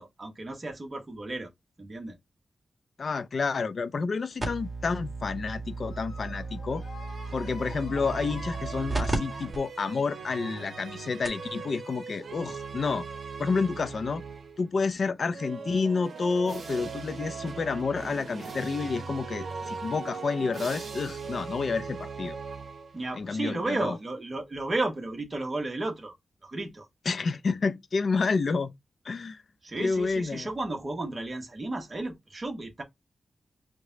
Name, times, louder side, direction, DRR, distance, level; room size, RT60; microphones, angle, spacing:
voice 1, 0.0-1.5 1.8-2.2 22.9-26.1 26.4-26.9 29.6-32.8, right 2 dB, 35° right, 1.1 m, -33 dB
voice 2, 3.0-6.8 7.3-13.1 13.4-14.2 14.6-22.4 23.2-23.9 27.1-28.7 29.0-29.4 29.8-30.5, left 4 dB, 60° left, 0.5 m, -29 dB
sound 1, 4.4-9.2 9.5-9.6 10.3-10.4 10.9-11.0 11.2-11.5 12.7-12.8, right 2 dB, 20° right, 2.0 m, -34 dB
sound 2, 5.9-9.9 10.4-11.0 12.0-12.3 12.8-12.9 14.2-14.3 15.1-15.2, left 3 dB, 80° left, 1.0 m, -48 dB
sound 3, 6.8-14.7 15.3-23.2, right 5 dB, 70° right, 0.9 m, -40 dB
4.9 x 2.2 x 3.9 m
wide cardioid pair, 90°, 0 cm